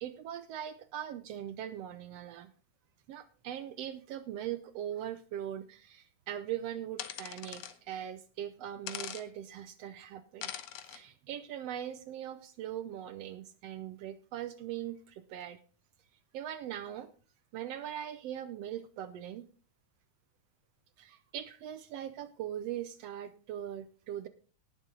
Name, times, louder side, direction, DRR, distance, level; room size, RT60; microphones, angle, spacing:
voice 1, 0.0-2.5 3.1-10.5 10.8-15.6 16.3-17.1 17.5-19.5 21.0-24.3, right 11 dB, 75° right, 12 dB, 1.5 m, -41 dB
sound 1, 7.0-7.7 8.9-9.2 10.4-11.0, left 10 dB, 65° left, 1.8 m, -41 dB
18.0 x 7.3 x 3.8 m, 0.37 s
omnidirectional pair, 3.5 m